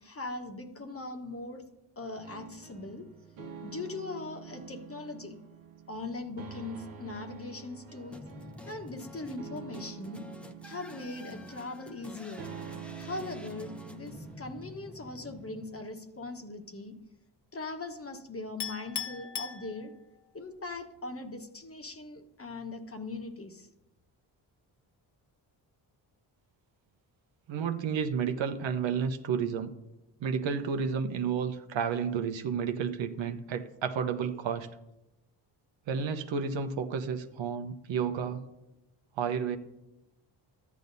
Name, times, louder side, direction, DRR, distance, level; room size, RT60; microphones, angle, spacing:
voice 1, 0.0-1.6 2.0-3.1 3.6-5.4 5.9-8.2 8.6-10.2 10.6-12.5 13.0-16.9 17.5-19.9 20.3-23.7, left 2 dB, 30° left, 6 dB, 1.2 m, -40 dB
sound 1, 2.2-14.3, right 7 dB, 90° right, 1.0 m, -47 dB
sound 2, 8.1-16.4, left 1 dB, ahead, 0.7 m, -48 dB
Chink clink, 18.6-20.3, left 8 dB, 60° left, 0.9 m, -38 dB
voice 2, 27.5-29.7 30.2-34.7 35.9-38.4 39.2-39.6, right 6 dB, 65° right, 7 dB, 0.9 m, -31 dB
13.0 x 9.6 x 2.7 m, 0.94 s
supercardioid pair, 55°, 48 cm